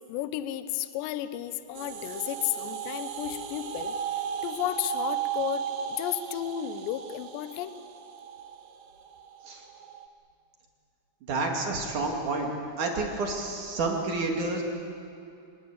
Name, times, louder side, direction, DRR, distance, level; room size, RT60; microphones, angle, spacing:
voice 1, 0.1-5.7 6.0-7.7, left 12 dB, 75° left, 11 dB, 2.9 m, -33 dB
sound 1, 1.8-10.1, right 8 dB, 80° right, 1.9 m, -35 dB
voice 2, 11.3-12.5 12.8-14.6, right 3 dB, 45° right, 1 dB, 3.4 m, -29 dB
26.0 x 21.0 x 8.6 m, 2.6 s
omnidirectional pair, 5.5 m